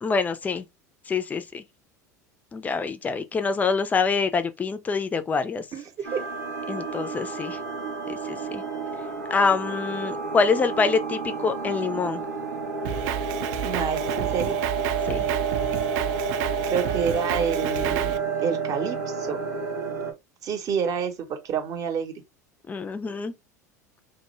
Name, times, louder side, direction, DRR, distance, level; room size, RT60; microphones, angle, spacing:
voice 1, 0.0-0.6 1.1-1.6 2.5-5.7 6.7-7.6 8.1-8.6 9.3-12.2 15.1-15.2 22.7-23.3, left 5 dB, 15° left, 0.4 m, -25 dB
voice 2, 5.7-6.2 13.6-14.6 16.7-19.4 20.4-22.1, right 6 dB, 40° right, 0.8 m, -28 dB
sound 1, 6.0-20.1, right 5 dB, 85° right, 0.7 m, -30 dB
Drum kit, 12.8-18.2, right 14 dB, 55° right, 0.3 m, -31 dB
2.1 x 2.1 x 3.0 m
figure-of-eight pair, 80°, 9 cm